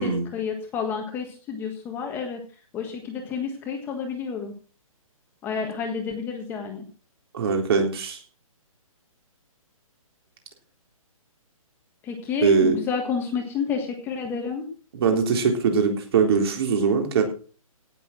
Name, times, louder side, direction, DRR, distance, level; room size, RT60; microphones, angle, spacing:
voice 1, 0.0-2.4 2.7-4.5 5.4-6.8 12.0-14.6, left 6 dB, 10° left, 3 dB, 1.5 m, -30 dB
voice 2, 7.3-8.2 12.4-12.8 14.9-17.2, right 5 dB, 45° right, 4 dB, 3.7 m, -21 dB
17.5 x 7.0 x 6.0 m, 0.39 s
hypercardioid pair, 165°, 18 cm